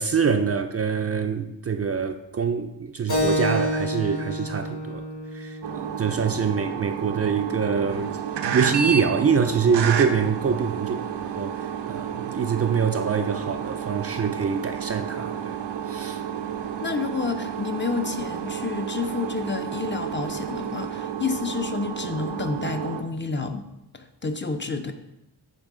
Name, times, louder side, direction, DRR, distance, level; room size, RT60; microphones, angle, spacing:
voice 1, 0.0-5.1 5.3-8.2 8.5-15.6 15.9-16.2 16.6-16.7, right 6 dB, 35° right, 0.4 m, -25 dB
Keyboard (musical), 3.1-8.2, equal, 65° left, 1.6 m, -30 dB
sound 1, 5.6-23.0, right 8 dB, 80° right, 0.6 m, -31 dB
voice 2, 16.8-23.7 23.9-24.9, left 4 dB, 30° left, 0.5 m, -29 dB
8.3 x 3.2 x 3.7 m
cardioid pair, 65°, 41 cm